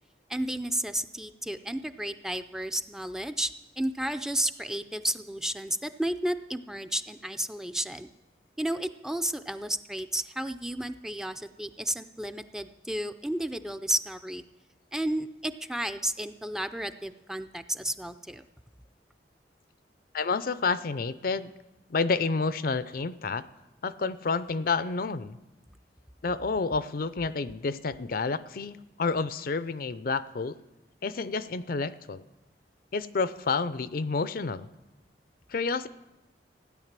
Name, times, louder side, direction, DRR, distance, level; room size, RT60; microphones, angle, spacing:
voice 1, 0.3-3.5 3.8-8.1 8.6-14.4 14.9-18.4, right 1 dB, 5° right, 9 dB, 0.4 m, -32 dB
voice 2, 20.1-21.5 21.9-23.5 23.8-25.4 26.2-30.5 31.0-32.2 32.9-34.7 35.5-35.9, left 4 dB, 55° left, 15 dB, 0.5 m, -29 dB
15.5 x 10.0 x 7.4 m, 0.99 s
head